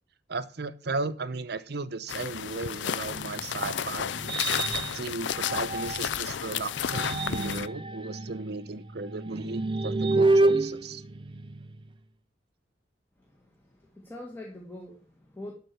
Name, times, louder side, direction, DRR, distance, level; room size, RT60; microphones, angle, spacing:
voice 1, 0.3-4.3 4.9-11.0, right 3 dB, 65° right, 13 dB, 0.8 m, -35 dB
sound 1, 2.1-7.7, left 8 dB, 80° left, 0.5 m, -32 dB
sound 2, 3.1-6.2 6.7-11.9, right 2 dB, 30° right, 0.6 m, -29 dB
voice 2, 13.1-15.5, left 1 dB, 10° left, 0 dB, 1.7 m, -44 dB
12.0 x 4.5 x 6.8 m, 0.39 s
head